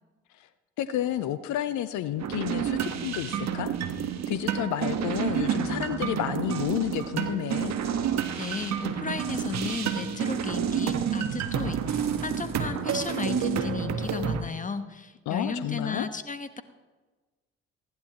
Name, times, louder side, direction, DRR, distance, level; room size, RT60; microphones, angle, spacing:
voice 1, 0.8-3.7 4.3-7.7 15.3-16.1, left 12 dB, 60° left, 13 dB, 0.7 m, -30 dB
sound 1, 2.2-14.4, right 8 dB, 50° right, 1.4 m, -29 dB
voice 2, 8.4-16.6, left 4 dB, 25° left, 11 dB, 1.3 m, -34 dB
19.5 x 15.0 x 3.0 m, 1.3 s
hypercardioid pair, 50°, 34 cm